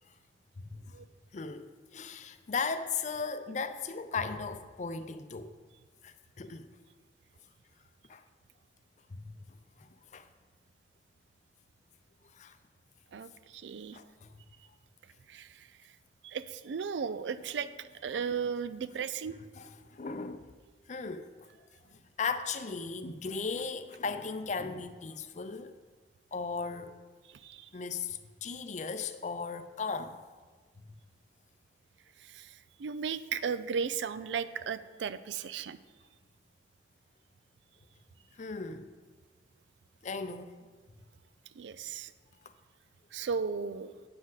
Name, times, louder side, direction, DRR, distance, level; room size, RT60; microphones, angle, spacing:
voice 1, 1.3-5.5 6.0-6.7 8.1-8.2 9.1-9.4 9.8-10.3 12.3-12.6 13.9-14.3 19.5-20.5 20.9-21.3 22.2-25.8 26.3-26.9 27.7-30.2 38.4-38.9 40.0-40.5, left 5 dB, 40° left, 10 dB, 0.5 m, -37 dB
voice 2, 13.1-14.0 15.3-15.5 16.2-19.4 27.4-27.7 32.3-32.5 32.8-35.8 41.6-42.1 43.1-43.9, right 6 dB, 85° right, 14 dB, 0.4 m, -35 dB
8.5 x 7.4 x 4.0 m, 1.4 s
head